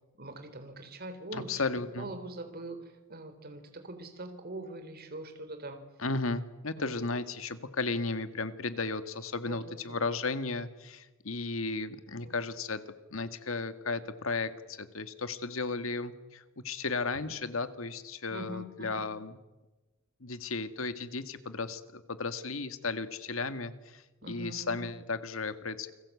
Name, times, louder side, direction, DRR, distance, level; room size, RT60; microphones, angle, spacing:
voice 1, 0.2-1.5 2.0-2.8 3.1-5.8 6.8-6.9 9.5-10.0 12.2-12.4 17.2-17.3 18.3-19.1 24.2-24.9, right 2 dB, 50° right, 7 dB, 3.7 m, -43 dB
voice 2, 1.3-2.1 6.0-12.8 13.1-19.4 20.2-25.9, left 3 dB, 85° left, 11 dB, 1.9 m, -35 dB
29.0 x 21.0 x 8.5 m, 1.1 s
head